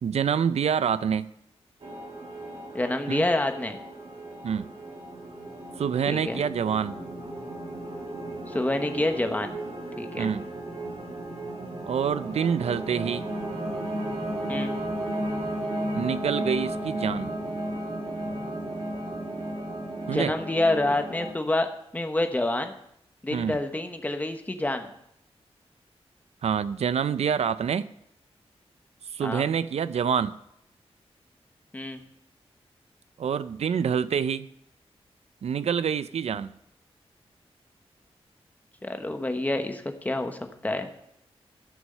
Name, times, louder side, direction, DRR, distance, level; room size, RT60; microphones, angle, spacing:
voice 1, 0.0-1.3 3.1-3.2 4.4-4.7 5.8-7.0 10.2-10.4 11.8-13.2 15.9-17.3 20.1-20.3 23.3-23.6 26.4-27.9 29.1-30.4 33.2-34.5 35.4-36.5, right 7 dB, 80° right, 15 dB, 0.5 m, -26 dB
sound 1, 1.8-21.3, right 1 dB, 60° right, 2.1 m, -34 dB
voice 2, 2.7-3.8 6.1-6.4 8.5-9.5 10.0-10.3 14.5-14.7 20.1-21.7 21.9-22.7 23.2-24.9 29.2-29.5 31.7-32.0 38.8-40.9, left 2 dB, 15° left, 6 dB, 1.0 m, -27 dB
14.5 x 6.2 x 6.6 m, 0.76 s
wide cardioid pair, 165°, 11 cm